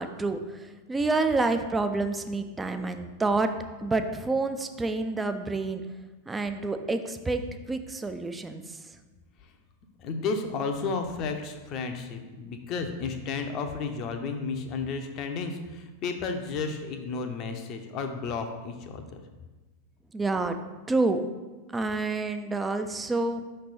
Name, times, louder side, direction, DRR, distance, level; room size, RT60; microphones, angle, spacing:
voice 1, 0.0-3.5 3.8-5.8 6.3-7.4 7.7-8.6 20.1-20.6 20.9-21.2 21.7-23.4, right 3 dB, 10° right, 7 dB, 0.4 m, -28 dB
voice 2, 10.0-19.2, left 4 dB, 35° left, 5 dB, 0.6 m, -32 dB
5.8 x 3.3 x 5.5 m, 1.2 s
figure-of-eight pair, 90°, 0 cm